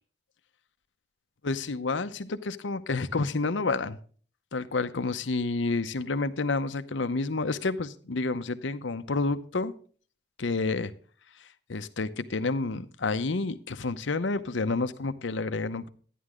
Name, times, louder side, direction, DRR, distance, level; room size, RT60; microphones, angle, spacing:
voice 1, 1.4-4.0 4.5-9.7 10.4-10.9 11.7-15.9, left 3 dB, 75° left, 11 dB, 0.8 m, -29 dB
11.5 x 10.0 x 3.7 m, 0.43 s
head